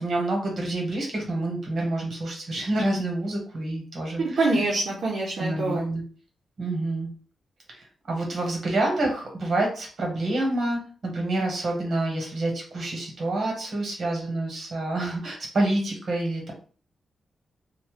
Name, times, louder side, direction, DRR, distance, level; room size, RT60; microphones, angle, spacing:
voice 1, 0.0-4.7 5.3-6.0 6.6-7.1 7.7-16.5, right 2 dB, 55° right, 0 dB, 1.2 m, -28 dB
voice 2, 4.4-5.8, right 2 dB, 80° right, -3 dB, 0.6 m, -25 dB
2.7 x 2.1 x 3.2 m, 0.40 s
wide cardioid pair, 120°, 0 cm